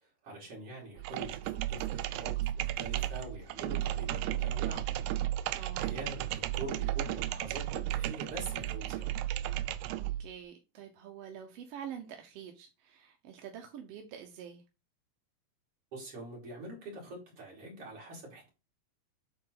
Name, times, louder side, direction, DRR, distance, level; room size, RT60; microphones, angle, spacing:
voice 1, 0.0-4.8 5.4-9.1 15.9-18.5, right 2 dB, 50° right, 3.7 m, -45 dB
sound 1, 1.0-10.3, right 13 dB, 85° right, 1.9 m, -34 dB
voice 2, 5.5-5.9 10.0-14.6, right 8 dB, 70° right, 1.7 m, -46 dB
8.7 x 3.8 x 3.8 m
omnidirectional pair, 3.4 m